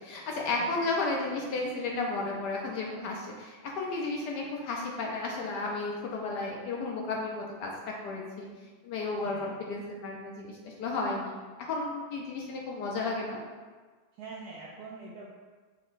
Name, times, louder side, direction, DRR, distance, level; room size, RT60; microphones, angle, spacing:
voice 1, 0.0-8.5 8.8-13.4, left 3 dB, 75° left, -1 dB, 1.0 m, -33 dB
voice 2, 9.2-9.5 14.2-15.3, right 4 dB, 75° right, -4 dB, 0.9 m, -44 dB
4.9 x 2.2 x 3.9 m, 1.4 s
omnidirectional pair, 2.1 m